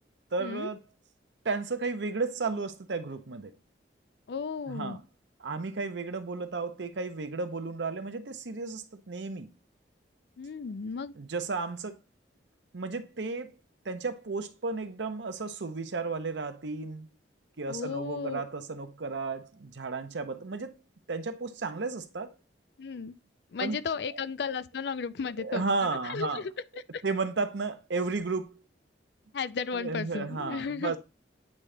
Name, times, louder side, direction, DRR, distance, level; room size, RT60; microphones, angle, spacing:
voice 1, 0.3-0.8 1.4-3.5 4.7-5.0 5.4-9.5 11.2-12.0 12.7-13.5 13.8-17.1 17.6-20.8 21.1-22.3 23.6-23.8 25.4-26.4 27.0-28.5 29.7-31.0, right 4 dB, 85° right, 0.8 m, -33 dB
voice 2, 4.3-5.0 10.4-11.1 17.7-18.4 22.8-23.1 23.5-26.5 26.9-27.0 29.3-31.0, left 5 dB, 65° left, 0.4 m, -34 dB
8.5 x 3.7 x 3.3 m
head